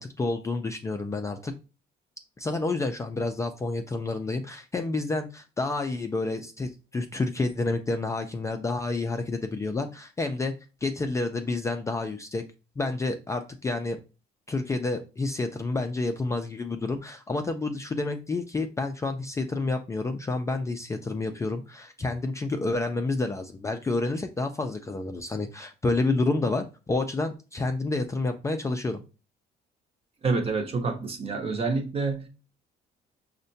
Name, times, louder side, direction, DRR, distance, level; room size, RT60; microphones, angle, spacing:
voice 1, 0.0-1.5 2.4-10.5 10.8-12.4 12.8-14.0 14.5-29.0, left 3 dB, 15° left, 0.3 m, -29 dB
voice 2, 30.2-32.3, right 4 dB, 35° right, 0.7 m, -27 dB
5.3 x 2.1 x 2.6 m
cardioid pair, 110°, 17 cm